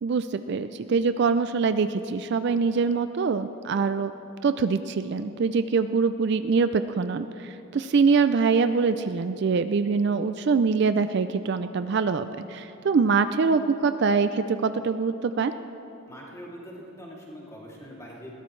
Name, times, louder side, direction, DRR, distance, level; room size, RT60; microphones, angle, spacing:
voice 1, 0.0-4.1 4.4-15.5, right 5 dB, 50° right, 11 dB, 0.3 m, -24 dB
voice 2, 16.1-18.3, equal, 15° left, -5 dB, 2.6 m, -43 dB
21.5 x 16.5 x 3.2 m, 3.0 s
head